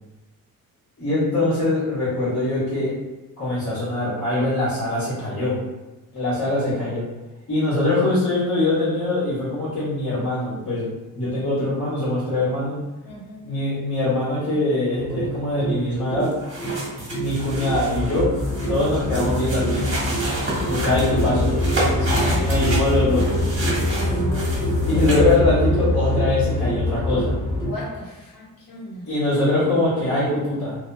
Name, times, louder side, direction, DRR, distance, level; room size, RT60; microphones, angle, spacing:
voice 1, 1.0-2.9 3.4-5.6 6.1-7.0 7.5-10.9 11.1-12.8 13.4-16.3 17.1-18.3 18.7-19.9 20.6-21.5 22.4-23.5 24.8-27.3 29.1-30.8, left 2 dB, 40° left, -10 dB, 1.3 m, -22 dB
voice 2, 13.0-13.5 22.0-22.4 23.9-24.4 27.6-29.0, equal, 70° left, -6 dB, 1.1 m, -35 dB
sound 1, 15.0-27.7, left 1 dB, 10° left, 1.2 m, -24 dB
sound 2, 16.2-25.3, right 1 dB, 35° right, 1.2 m, -30 dB
2.7 x 2.3 x 2.2 m, 1.1 s
cardioid pair, 120°, 36 cm